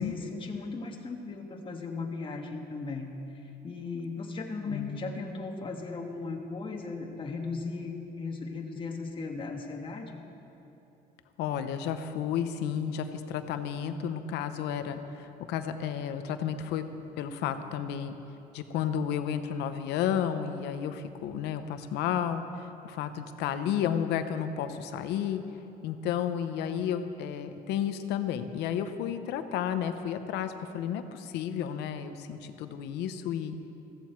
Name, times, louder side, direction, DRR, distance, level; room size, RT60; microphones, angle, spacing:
voice 1, 0.0-3.2 3.6-10.2, left 3 dB, 30° left, 2 dB, 1.5 m, -37 dB
voice 2, 4.7-5.0 11.4-16.9 17.2-18.2 18.5-25.4 25.8-33.6, left 9 dB, 85° left, 9 dB, 0.8 m, -32 dB
15.0 x 14.5 x 4.5 m, 3.0 s
cardioid pair, 110°, 17 cm